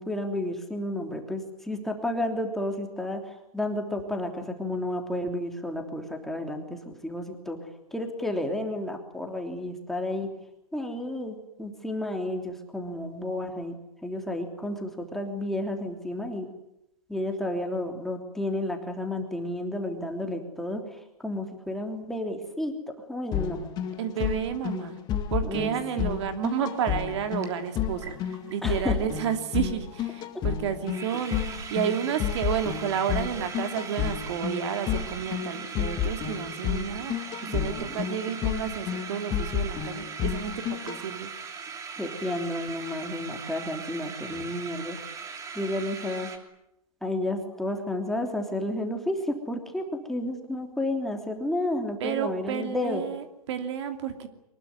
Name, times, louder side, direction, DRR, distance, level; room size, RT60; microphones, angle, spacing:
voice 1, 0.0-3.2 3.5-7.6 7.9-10.3 10.7-13.7 14.0-16.5 17.1-20.8 21.2-22.7 23.1-23.7 25.4-25.7 28.6-29.0 37.4-37.9 42.0-45.0 45.5-46.3 47.0-53.0, left 1 dB, ahead, 3 dB, 3.2 m, -31 dB
sound 1, 23.3-41.0, left 9 dB, 20° left, 2.1 m, -31 dB
voice 2, 24.0-24.9 25.3-41.3 44.3-44.4 52.0-54.3, right 8 dB, 45° right, 7 dB, 2.8 m, -31 dB
sound 2, 26.7-26.8 27.1-28.8 29.1-29.2 29.4-29.7 29.9-30.0 30.4-30.5 30.7-46.4, right 6 dB, 15° right, 2.9 m, -40 dB
24.5 x 21.0 x 9.6 m, 0.84 s
hypercardioid pair, 140°, 19 cm